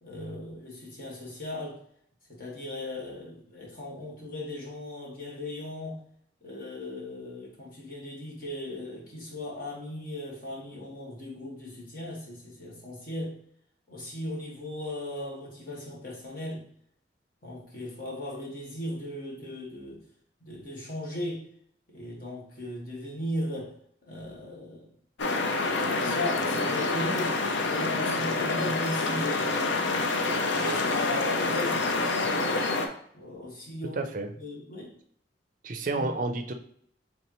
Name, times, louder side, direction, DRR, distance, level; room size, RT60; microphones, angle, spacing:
voice 1, 0.0-1.8 2.3-6.0 6.4-13.4 13.9-16.6 17.4-20.0 20.4-21.4 21.9-23.7 24.0-24.9 25.5-27.4 27.7-31.8 33.1-34.0 34.4-34.9 35.9-36.1, left 1 dB, 50° left, -3 dB, 1.5 m, -37 dB
sound 1, 25.2-32.9, left 3 dB, 80° left, 0.6 m, -27 dB
voice 2, 33.9-34.3 35.6-36.5, right 3 dB, 45° right, 6 dB, 0.4 m, -30 dB
4.2 x 3.5 x 3.0 m, 0.64 s
head